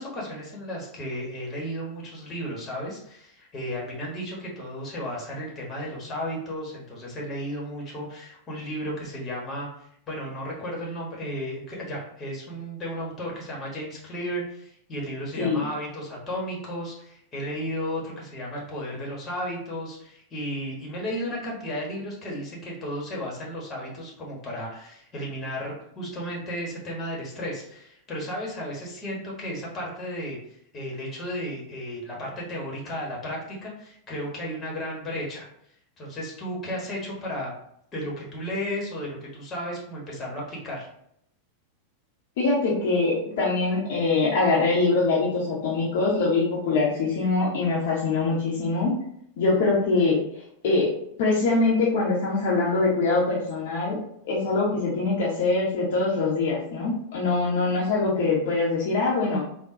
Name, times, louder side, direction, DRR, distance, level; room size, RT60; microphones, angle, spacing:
voice 1, 0.0-9.7 10.1-35.5 36.0-37.5 37.9-40.9, equal, 25° left, -3 dB, 1.2 m, -34 dB
voice 2, 42.4-48.9 49.4-50.9 51.2-54.0 54.2-59.4, left 3 dB, 50° left, -5 dB, 0.8 m, -23 dB
3.6 x 2.2 x 2.6 m, 0.70 s
figure-of-eight pair, 90°, 0 cm